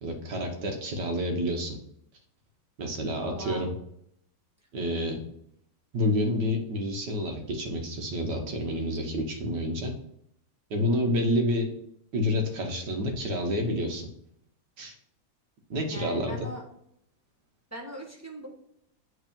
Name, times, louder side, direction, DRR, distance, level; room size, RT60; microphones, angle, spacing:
voice 1, 0.0-1.8 2.8-3.7 4.7-5.2 5.9-9.9 10.7-11.7 12.1-14.1 14.8-14.9 15.7-16.3, left 1 dB, 65° right, 3 dB, 1.7 m, -28 dB
voice 2, 3.2-3.6 10.8-11.2 15.9-16.6 17.7-18.5, equal, 10° right, -1 dB, 0.8 m, -40 dB
8.1 x 3.7 x 5.2 m, 0.74 s
omnidirectional pair, 2.1 m